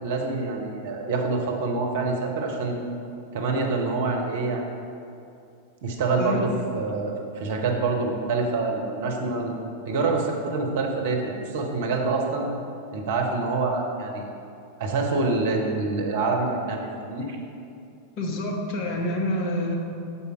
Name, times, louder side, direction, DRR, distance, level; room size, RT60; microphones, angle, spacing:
voice 1, 0.0-2.8 3.3-4.7 5.8-9.5 9.8-12.5 12.9-14.3 14.8-17.4, right 3 dB, 55° right, 1 dB, 0.9 m, -26 dB
voice 2, 18.2-19.8, left 1 dB, 40° left, 0 dB, 1.0 m, -27 dB
7.0 x 4.2 x 4.9 m, 2.6 s
figure-of-eight pair, 90°, 0 cm